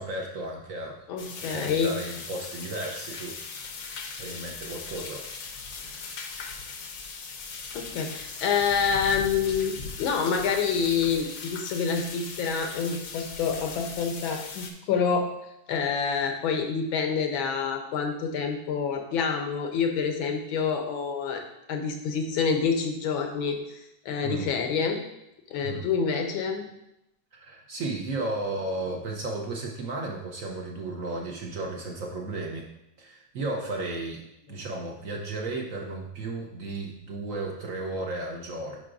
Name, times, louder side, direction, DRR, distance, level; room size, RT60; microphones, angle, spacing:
voice 1, 0.0-1.0 1.4-3.4 4.2-5.3 7.8-7.9 24.2-24.5 25.6-25.9 27.3-32.7 33.0-34.2 34.5-38.8, right 2 dB, 60° right, 1 dB, 0.8 m, -34 dB
voice 2, 1.1-1.9 5.8-6.1 7.7-15.3 15.7-21.4 21.7-23.6 24.0-25.0 25.5-26.7, left 6 dB, 85° left, 4 dB, 1.6 m, -27 dB
sound 1, 1.2-14.7, left 4 dB, 60° left, 0.9 m, -39 dB
10.5 x 4.6 x 2.5 m, 0.84 s
omnidirectional pair, 2.2 m